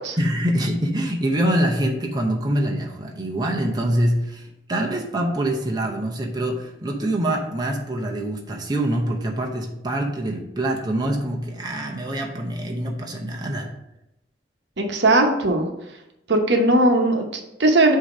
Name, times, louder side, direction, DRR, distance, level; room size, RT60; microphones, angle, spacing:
voice 1, 0.2-13.7, right 1 dB, 20° right, 0 dB, 0.7 m, -25 dB
voice 2, 14.8-15.7 16.3-18.0, right 2 dB, 75° right, 3 dB, 0.9 m, -18 dB
7.9 x 2.8 x 4.9 m, 0.87 s
head